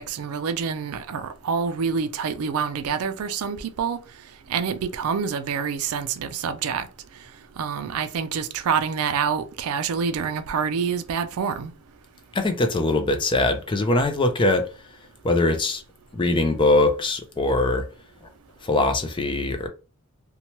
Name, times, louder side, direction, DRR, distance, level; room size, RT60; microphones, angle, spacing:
voice 1, 0.0-4.0 4.5-6.9 7.6-11.7, right 6 dB, 70° right, 0.4 m, -27 dB
voice 2, 12.3-14.7 15.2-15.8 16.1-17.9 18.6-19.7, left 2 dB, 20° left, 0.4 m, -22 dB
2.8 x 2.2 x 2.9 m
head